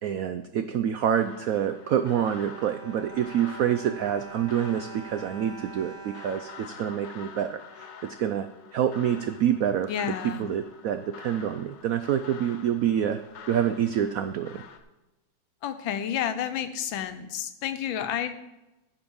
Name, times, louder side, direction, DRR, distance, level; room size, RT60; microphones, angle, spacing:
voice 1, 0.0-7.9 8.2-9.9 10.4-13.2 13.5-14.6, right 9 dB, 85° right, 10 dB, 0.7 m, -27 dB
sound 1, 1.0-14.8, left 7 dB, 70° left, 1.5 m, -47 dB
Bowed string instrument, 1.5-7.6 8.3-8.4 8.6-8.8, right 6 dB, 40° right, 2.4 m, -45 dB
voice 2, 9.9-10.5 15.6-18.3, left 9 dB, 85° left, 10 dB, 1.5 m, -30 dB
14.5 x 5.3 x 5.4 m, 1.0 s
omnidirectional pair, 2.1 m